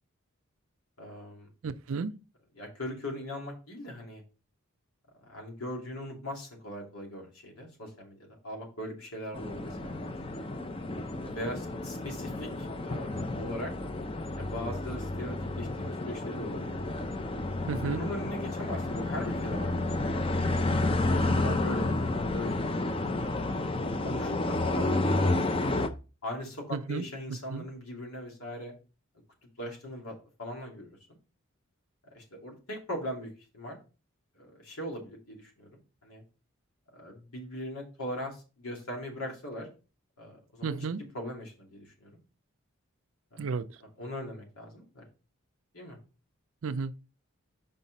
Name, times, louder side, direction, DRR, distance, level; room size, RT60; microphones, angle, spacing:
voice 1, 1.0-1.5 2.6-4.2 5.2-10.2 11.2-13.7 14.4-16.8 17.7-20.4 21.2-23.1 23.8-25.5 26.2-28.7 29.6-31.0 32.1-33.8 34.4-36.2 36.9-39.7 40.2-40.9 41.1-42.1 43.3-43.5 43.8-45.0 45.7-46.0, equal, 85° left, 2.8 m, -40 dB
voice 2, 1.6-2.1 17.7-18.0 26.7-27.1 27.5-27.7 40.6-41.0 43.4-43.7 46.6-47.0, right 5 dB, 70° right, 0.5 m, -32 dB
sound 1, 9.3-25.9, left 2 dB, 25° left, 0.5 m, -31 dB
5.7 x 5.4 x 4.0 m
head